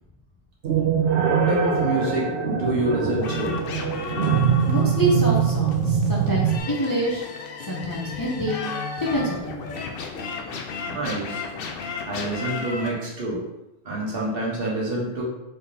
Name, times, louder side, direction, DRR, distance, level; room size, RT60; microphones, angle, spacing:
sound 1, 0.6-6.6, right 7 dB, 80° right, 0.9 m, -23 dB
voice 1, 1.2-3.6 10.9-11.4 12.1-13.4 13.8-15.2, right 2 dB, 60° right, -4 dB, 1.2 m, -27 dB
sound 2, 3.2-12.9, left 5 dB, 65° left, 0.7 m, -34 dB
voice 2, 4.7-7.2 7.6-8.6 9.0-9.7, right 1 dB, 25° left, -5 dB, 0.5 m, -26 dB
4.2 x 3.5 x 2.7 m, 0.91 s
omnidirectional pair, 1.1 m